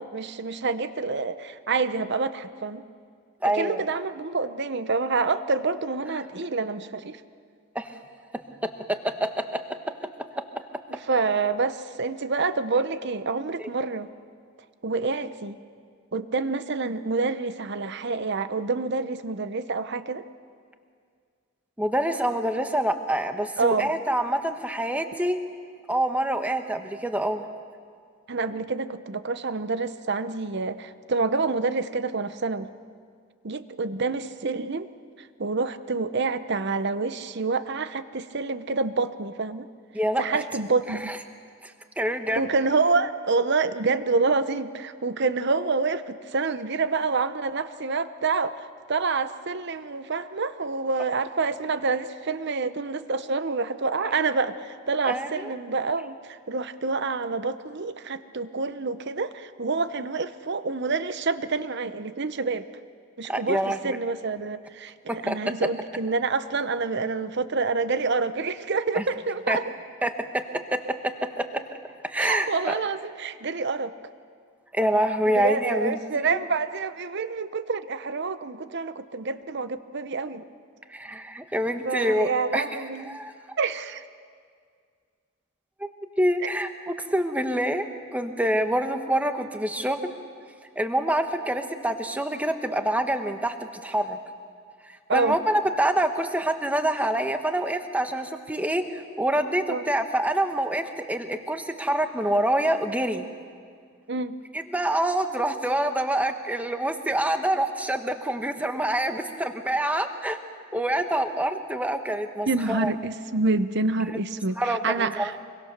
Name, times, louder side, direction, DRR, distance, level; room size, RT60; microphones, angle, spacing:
voice 1, 0.0-2.8 3.5-7.2 10.9-14.1 14.8-15.6 16.1-20.2 23.6-23.9 28.3-32.7 33.4-34.9 35.2-39.7 40.2-41.1 42.4-62.7 63.2-69.6 72.2-73.9 75.3-80.4 81.8-83.2 83.6-84.0 95.1-95.4 99.7-99.8 104.1-104.4 112.5-115.3, right 4 dB, 55° right, 12 dB, 0.8 m, -27 dB
voice 2, 3.4-3.9 7.7-7.9 8.6-9.4 10.4-10.5 13.6-13.7 21.8-25.4 25.9-27.4 39.9-40.4 40.9-41.2 41.6-42.5 54.0-54.1 55.0-55.5 63.3-64.0 65.1-65.4 68.9-69.0 69.5-69.6 70.0-70.4 70.7-71.6 72.0-72.7 74.7-76.4 80.9-83.3 85.8-87.9 88.1-90.1 90.8-93.5 93.8-94.2 94.8-103.2 104.5-110.4 110.7-112.9 114.6-115.3, right 1 dB, 5° right, 7 dB, 1.2 m, -26 dB
25.0 x 23.0 x 6.7 m, 2.1 s
head